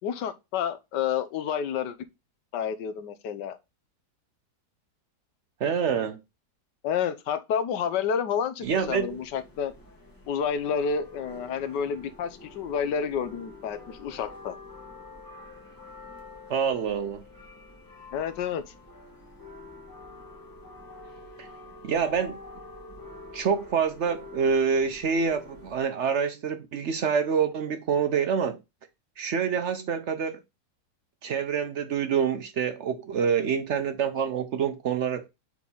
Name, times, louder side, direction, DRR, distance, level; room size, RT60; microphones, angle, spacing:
voice 1, 0.0-2.0 2.5-3.6 6.8-9.7 10.3-14.6 18.1-18.7, left 7 dB, 90° left, 1.4 m, -29 dB
voice 2, 5.6-6.2 8.6-9.1 16.5-17.2 21.4-21.5 21.8-22.4 23.3-28.6 29.2-30.4 31.2-35.3, right 6 dB, 65° right, 0.7 m, -26 dB
sound 1, 8.6-25.8, left 2 dB, 15° left, 1.4 m, -47 dB
4.7 x 4.2 x 5.3 m
omnidirectional pair, 1.8 m